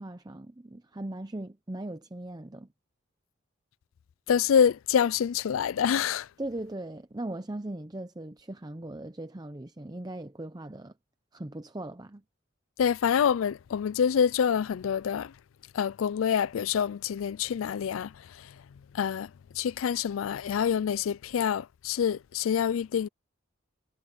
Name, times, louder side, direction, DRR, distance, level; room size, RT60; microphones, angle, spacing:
voice 1, 0.0-2.7 6.4-10.9 11.3-12.2, right 1 dB, 20° right, 0.6 m, -39 dB
voice 2, 4.3-6.3 12.8-15.3 15.7-18.1 18.9-19.3 19.6-23.1, left 7 dB, 80° left, 0.4 m, -26 dB
head